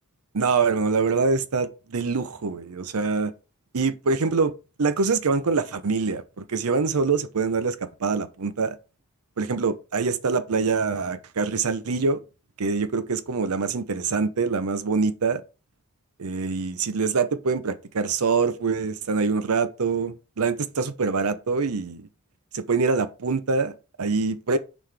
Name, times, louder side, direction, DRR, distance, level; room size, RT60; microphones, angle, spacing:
voice 1, 0.3-3.3 3.7-4.5 4.8-8.8 9.4-12.2 12.6-15.4 16.2-22.1 22.5-24.6, right 4 dB, 80° right, 0.7 m, -25 dB
5.8 x 5.0 x 3.4 m
head